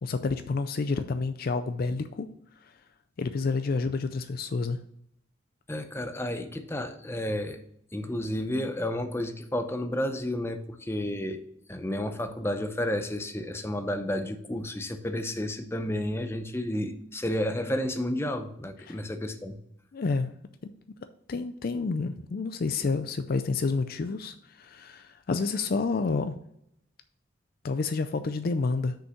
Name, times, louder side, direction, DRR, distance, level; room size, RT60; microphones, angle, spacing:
voice 1, 0.0-2.3 3.2-4.8 18.9-19.0 19.9-20.3 20.6-20.7 21.3-26.4 27.6-29.0, left 4 dB, 50° left, 10 dB, 0.4 m, -29 dB
voice 2, 5.7-7.6 7.9-11.4 11.7-19.6, left 1 dB, 15° left, 7 dB, 0.7 m, -31 dB
6.4 x 5.3 x 5.8 m, 0.74 s
head